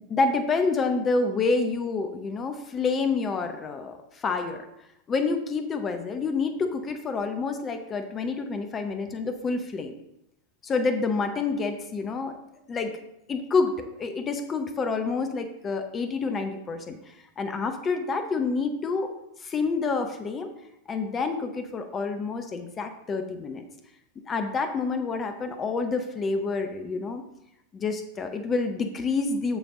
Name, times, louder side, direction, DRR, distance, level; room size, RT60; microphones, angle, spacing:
voice 1, 0.1-4.7 5.1-9.9 10.6-12.4 12.7-13.0 13.3-19.1 19.4-20.5 20.9-23.7 24.3-27.2 27.7-29.6, left 4 dB, 25° left, 7 dB, 0.7 m, -28 dB
7.0 x 7.0 x 3.7 m, 0.82 s
figure-of-eight pair, 90°, 0 cm